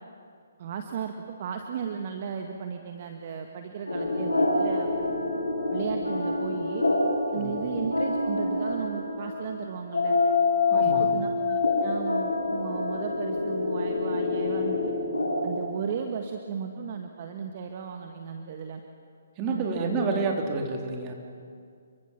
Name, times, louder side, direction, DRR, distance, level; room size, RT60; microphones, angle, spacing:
voice 1, 0.6-4.9 5.7-6.8 7.3-10.2 10.7-10.9 11.1-14.9 15.4-18.8 19.5-20.0, right 7 dB, 40° right, 5 dB, 1.6 m, -35 dB
sound 1, 3.9-15.6, left 3 dB, 85° left, 6.8 m, -27 dB
voice 2, 7.3-7.7 10.7-11.2 19.4-21.1, right 3 dB, 25° right, 2 dB, 3.3 m, -29 dB
29.0 x 23.5 x 6.0 m, 2.2 s
figure-of-eight pair, 135°, 0 cm